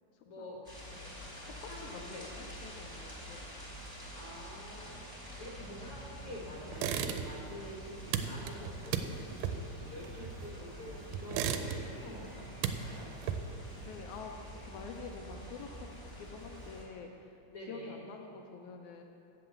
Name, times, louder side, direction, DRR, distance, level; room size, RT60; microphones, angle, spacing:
voice 1, 0.3-0.6 1.7-2.2 4.1-13.1 17.5-17.9, left 1 dB, 55° left, -5 dB, 1.8 m, -47 dB
sound 1, 0.6-16.8, equal, 5° left, 2.0 m, -47 dB
voice 2, 1.5-3.5 13.8-14.3 14.6-17.4 17.7-19.0, left 5 dB, 80° left, 3 dB, 1.9 m, -47 dB
sound 2, 6.7-7.5 7.8-10.7 11.1-12.1 12.4-13.7, right 8 dB, 85° right, 2.2 m, -35 dB
7.7 x 6.9 x 8.0 m, 2.6 s
omnidirectional pair, 3.7 m